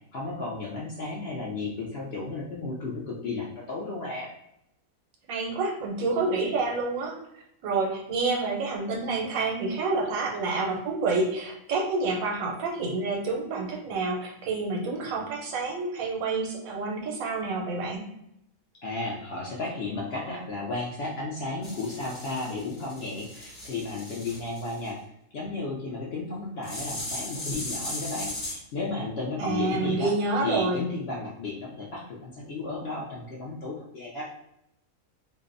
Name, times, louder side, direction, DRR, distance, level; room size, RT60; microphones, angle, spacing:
voice 1, 0.1-4.3 18.8-25.0 25.3-30.1 30.4-34.3, left 3 dB, 65° left, -5 dB, 0.6 m, -33 dB
voice 2, 5.3-18.1 29.4-30.9, right 3 dB, 80° right, 1 dB, 1.0 m, -28 dB
sound 1, 21.6-24.9 26.6-28.6, left 1 dB, 40° left, 1.1 m, -37 dB
2.5 x 2.0 x 2.4 m, 0.79 s
omnidirectional pair, 1.4 m